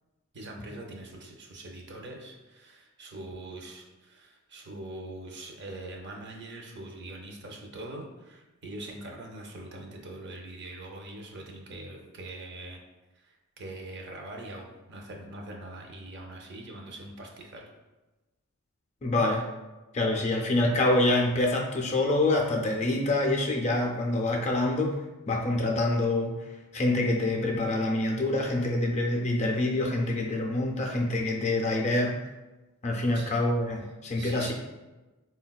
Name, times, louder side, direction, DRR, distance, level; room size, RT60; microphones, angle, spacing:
voice 1, 0.3-12.8 13.1-17.7 33.1-33.3 34.1-34.5, right 2 dB, 55° right, 1 dB, 0.5 m, -43 dB
voice 2, 19.0-19.4 19.9-24.9 25.3-26.3 26.7-32.1 32.8-34.5, left 2 dB, 30° left, 0 dB, 0.4 m, -26 dB
3.9 x 2.2 x 2.3 m, 1.1 s
head